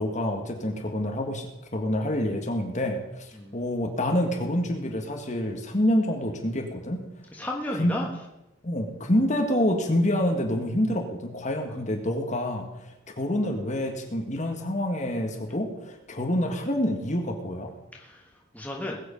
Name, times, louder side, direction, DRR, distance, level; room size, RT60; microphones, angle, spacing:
voice 1, 0.0-7.0 7.8-7.9 8.6-12.7 13.2-17.7, left 1 dB, 35° left, 3 dB, 1.9 m, -27 dB
voice 2, 3.3-3.6 7.3-8.1 11.7-11.8 17.9-19.0, left 1 dB, 10° left, -1 dB, 1.5 m, -34 dB
20.5 x 8.1 x 5.4 m, 0.93 s
head